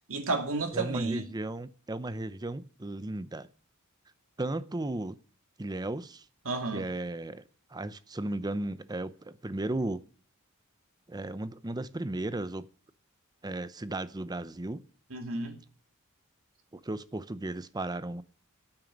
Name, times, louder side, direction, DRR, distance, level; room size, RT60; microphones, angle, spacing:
voice 1, 0.1-1.3 6.4-6.9 15.1-15.6, right 3 dB, 65° right, 2.5 m, -31 dB
voice 2, 0.7-3.5 4.4-5.2 5.6-6.2 6.7-7.4 7.7-10.0 11.1-12.7 13.4-14.8 16.8-18.2, right 2 dB, 20° right, 0.6 m, -35 dB
9.5 x 8.9 x 10.0 m
head